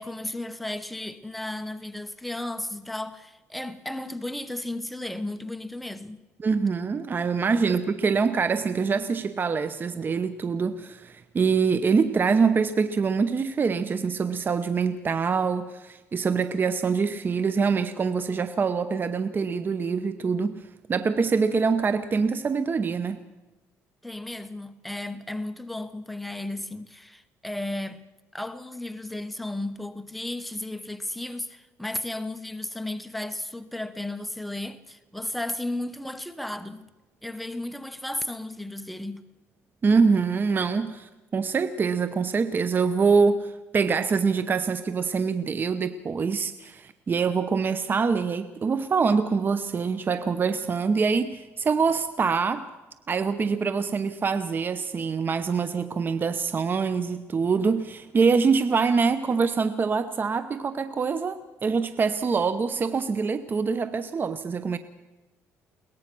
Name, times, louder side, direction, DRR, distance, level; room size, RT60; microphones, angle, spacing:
voice 1, 0.0-6.2 7.7-7.8 24.0-28.0 28.3-36.9 37.2-39.3, left 1 dB, ahead, 1.1 m, -34 dB
voice 2, 6.4-20.6 20.9-23.2 39.8-52.7 53.1-64.8, right 5 dB, 35° right, 0.9 m, -25 dB
22.5 x 19.0 x 6.2 m
cardioid pair, 95°, 6 cm